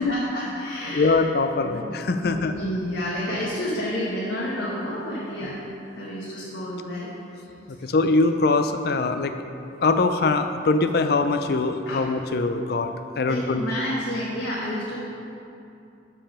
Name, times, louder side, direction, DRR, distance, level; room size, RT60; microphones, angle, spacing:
voice 1, 0.0-1.2 1.6-1.8 2.2-5.6 5.9-7.5 11.9-12.0 13.3-15.0, equal, 80° left, -6 dB, 1.2 m, -30 dB
voice 2, 0.9-2.5 7.8-9.3 9.8-13.6, left 3 dB, 55° left, 8 dB, 0.4 m, -22 dB
6.8 x 5.6 x 5.5 m, 2.7 s
head